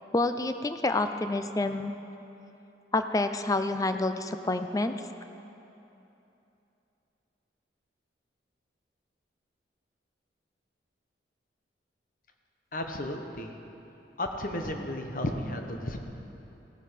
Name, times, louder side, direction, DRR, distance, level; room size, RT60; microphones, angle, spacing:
voice 1, 0.1-1.9 2.9-4.9, left 2 dB, 20° left, 9 dB, 0.4 m, -28 dB
voice 2, 12.7-13.6 14.2-16.0, left 1 dB, 50° left, 4 dB, 1.0 m, -33 dB
17.0 x 7.6 x 5.0 m, 2.9 s
head